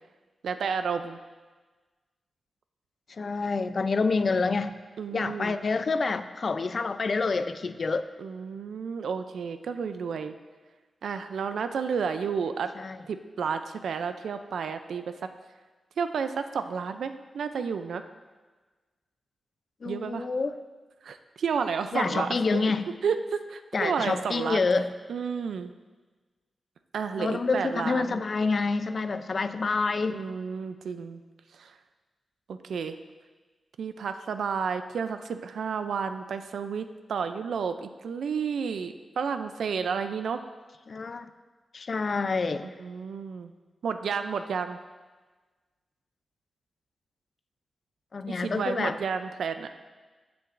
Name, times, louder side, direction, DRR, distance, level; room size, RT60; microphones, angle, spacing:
voice 1, 0.4-1.2 5.0-5.6 8.2-10.3 11.0-12.7 13.1-15.2 16.0-18.0 19.9-20.3 21.0-22.7 23.0-24.6 25.1-25.7 26.9-28.2 30.1-31.2 31.5-31.7 32.5-33.0 33.8-40.4 42.6-43.5 43.8-44.8 48.3-49.7, right 6 dB, 90° right, 9 dB, 0.4 m, -31 dB
voice 2, 3.1-4.8 5.1-8.1 12.8-13.0 19.8-20.6 21.9-22.9 23.7-24.9 27.2-30.2 40.9-41.3 41.7-42.7 48.1-49.0, left 4 dB, 55° left, 10 dB, 0.4 m, -27 dB
15.5 x 6.9 x 2.5 m, 1.3 s
cardioid pair, 65°, 0 cm